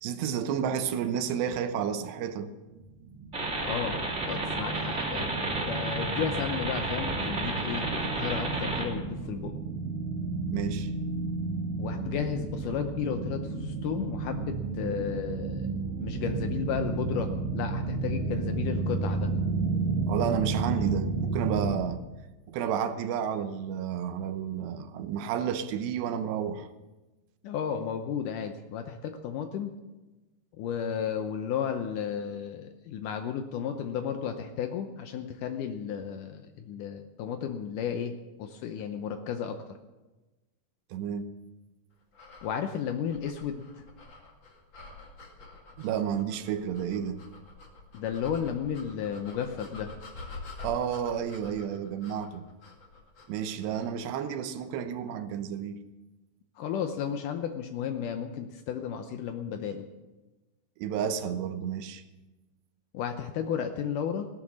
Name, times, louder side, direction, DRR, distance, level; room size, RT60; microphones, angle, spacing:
voice 1, 0.0-2.5 10.5-10.9 20.1-22.0 22.5-26.7 40.9-41.3 45.8-47.2 50.6-52.5 53.3-55.8 60.8-62.0, right 8 dB, 85° right, 3.1 m, -31 dB
sound 1, 2.8-21.7, right 3 dB, 60° right, 1.8 m, -32 dB
sound 2, 3.3-8.9, right 2 dB, 25° right, 1.9 m, -32 dB
voice 2, 3.6-4.0 4.3-9.5 11.8-15.7 16.0-19.3 27.4-29.7 30.5-39.8 42.4-43.8 47.9-49.9 56.6-59.8 62.9-64.3, left 8 dB, 85° left, 1.8 m, -33 dB
sound 3, 42.1-54.0, left 3 dB, 35° left, 2.1 m, -47 dB
17.0 x 13.0 x 6.2 m
omnidirectional pair, 4.8 m